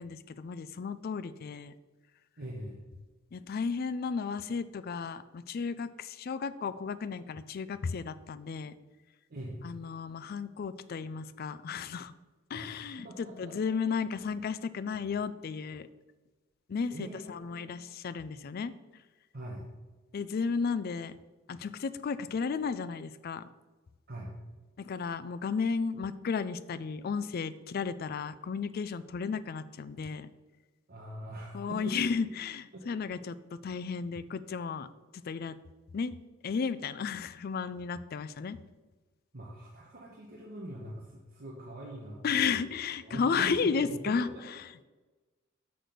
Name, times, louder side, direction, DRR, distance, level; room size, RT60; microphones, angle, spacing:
voice 1, 0.0-1.7 3.3-8.7 9.6-12.1 12.5-15.9 16.7-18.7 20.1-21.1 21.5-23.5 24.8-30.3 31.5-33.3 33.6-34.9 35.2-35.5 35.9-36.2 36.4-38.6 42.2-44.3, left 5 dB, 45° left, 14 dB, 0.4 m, -33 dB
voice 2, 2.4-2.9 9.3-9.6 12.5-12.7 13.0-13.5 16.9-17.8 19.3-19.7 24.1-24.3 30.9-32.1 32.7-32.8 39.3-42.7 43.0-44.3, right 1 dB, 50° right, -3 dB, 1.2 m, -42 dB
6.5 x 6.0 x 5.1 m, 1.3 s
head